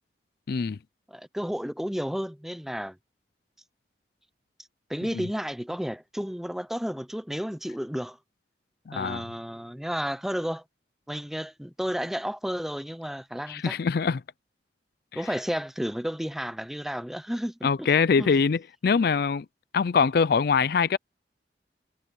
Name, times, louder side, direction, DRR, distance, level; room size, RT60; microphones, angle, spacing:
voice 1, 0.5-0.8 5.1-5.3 8.9-9.2 13.5-14.2 15.1-15.2 17.6-19.5 19.7-21.0, left 5 dB, 60° left, 0.4 m, -23 dB
voice 2, 1.1-3.0 4.9-8.2 8.9-10.6 11.1-13.8 15.1-17.9 18.2-18.3, equal, ahead, 0.6 m, -32 dB
head